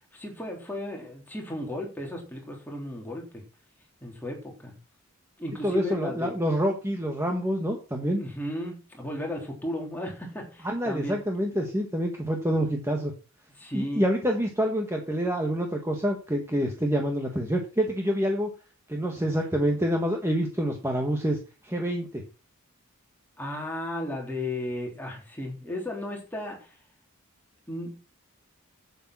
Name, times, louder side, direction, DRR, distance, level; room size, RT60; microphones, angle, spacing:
voice 1, 0.1-3.4 4.0-4.7 5.4-6.3 8.2-11.2 13.6-14.0 23.4-26.8 27.7-27.9, left 1 dB, 10° left, 0 dB, 3.4 m, -35 dB
voice 2, 5.6-8.2 10.6-13.1 13.7-18.5 18.9-21.4 21.6-22.2, equal, 10° right, 2 dB, 1.5 m, -27 dB
8.5 x 8.4 x 6.1 m, 0.33 s
head